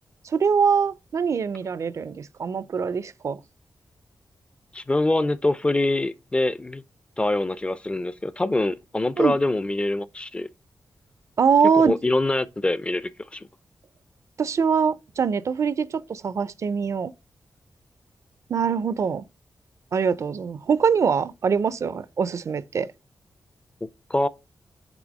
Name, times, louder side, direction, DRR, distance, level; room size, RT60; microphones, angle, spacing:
voice 1, 0.2-3.4 9.2-9.3 11.4-11.9 14.4-17.1 18.5-19.2 19.9-22.9, right 6 dB, 55° right, 0.4 m, -23 dB
voice 2, 4.7-6.8 7.2-10.5 11.7-13.5 24.1-24.3, left 2 dB, 15° left, 0.4 m, -24 dB
6.0 x 3.4 x 5.2 m
wide cardioid pair, 140°, 6 cm